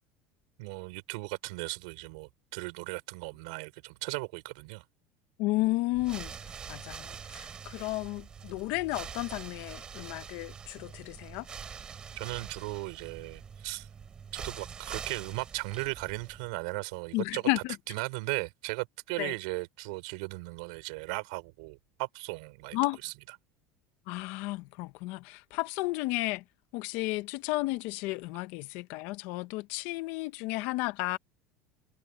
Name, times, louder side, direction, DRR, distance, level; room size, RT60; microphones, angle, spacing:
voice 1, 0.6-4.8 12.1-13.9 14.3-17.4 17.9-22.8 23.0-23.1, right 28 dB, 80° right, 4.8 m, -37 dB
voice 2, 5.4-11.5 17.1-17.8 19.2-19.3 22.7-23.0 24.1-26.4 26.7-31.2, left 20 dB, 65° left, 0.9 m, -33 dB
sound 1, 5.9-16.6, right 6 dB, 20° right, 7.4 m, -44 dB
cardioid pair, 155°, 4 cm